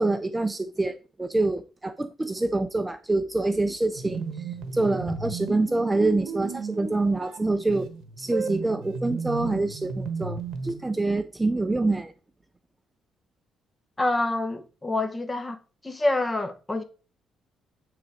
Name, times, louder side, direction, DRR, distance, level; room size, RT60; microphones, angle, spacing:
voice 1, 0.0-7.9 8.2-12.1, right 2 dB, 10° right, 0.4 m, -26 dB
sound 1, 3.9-10.8, right 4 dB, 70° right, 1.2 m, -34 dB
voice 2, 14.0-15.6 15.8-16.8, left 2 dB, 15° left, 0.9 m, -27 dB
9.3 x 3.9 x 4.8 m
cardioid pair, 135°, 0 cm